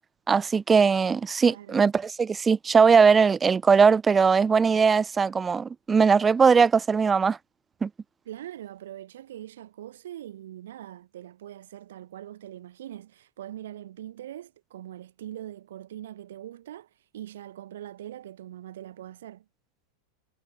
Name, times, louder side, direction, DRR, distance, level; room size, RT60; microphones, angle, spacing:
voice 1, 0.3-7.4 7.8-7.9, right 5 dB, 15° right, 0.8 m, -20 dB
voice 2, 1.4-1.8 8.3-19.4, right 12 dB, 60° right, 3.0 m, -42 dB
figure-of-eight pair, 90°, 0 cm